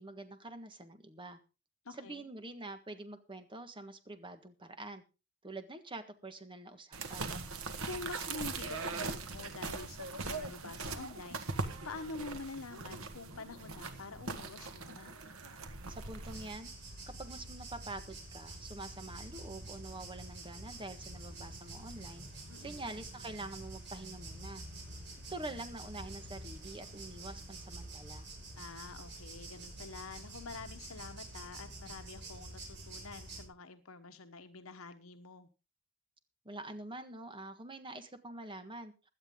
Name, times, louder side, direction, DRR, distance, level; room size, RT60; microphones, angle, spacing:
voice 1, 0.0-1.4 1.9-5.0 5.4-7.4 15.9-16.7 17.1-22.3 22.6-24.6 25.3-28.3 36.4-38.9, right 2 dB, 25° right, 9 dB, 1.6 m, -46 dB
voice 2, 1.8-2.3 7.8-15.1 22.5-22.9 28.6-35.5, left 3 dB, 80° left, 8 dB, 1.1 m, -47 dB
sound 1, 6.9-16.5, right 3 dB, 85° right, 1.6 m, -41 dB
sound 2, 16.3-33.5, right 2 dB, 55° right, 5.7 m, -48 dB
16.5 x 11.5 x 3.8 m, 0.31 s
head